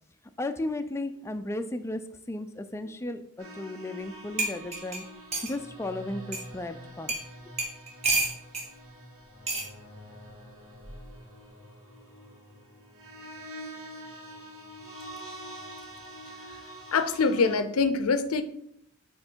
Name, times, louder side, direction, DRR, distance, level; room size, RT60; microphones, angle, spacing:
voice 1, 0.4-5.0 5.4-7.1 7.4-7.5, left 2 dB, 10° left, 8 dB, 0.4 m, -35 dB
sound 1, 3.4-17.6, right 1 dB, 70° right, 2.0 m, -46 dB
sound 2, 4.0-4.1 4.4-5.5 6.3-6.4 7.1-7.2 7.6-8.7 9.5-9.7 10.8-11.1, right 3 dB, 30° right, 1.2 m, -29 dB
voice 2, 16.9-18.4, left 4 dB, 80° left, 11 dB, 0.6 m, -24 dB
7.8 x 3.2 x 4.4 m, 0.71 s
head